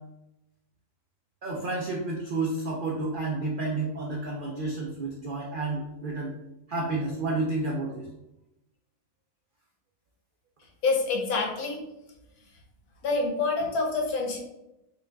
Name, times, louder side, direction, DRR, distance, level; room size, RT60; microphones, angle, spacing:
voice 1, 1.4-6.3 6.7-8.1, right 2 dB, 85° right, -2 dB, 0.4 m, -30 dB
voice 2, 10.8-11.8 13.0-14.4, left 3 dB, 80° left, 0 dB, 1.3 m, -26 dB
4.9 x 2.4 x 2.3 m, 0.90 s
omnidirectional pair, 1.6 m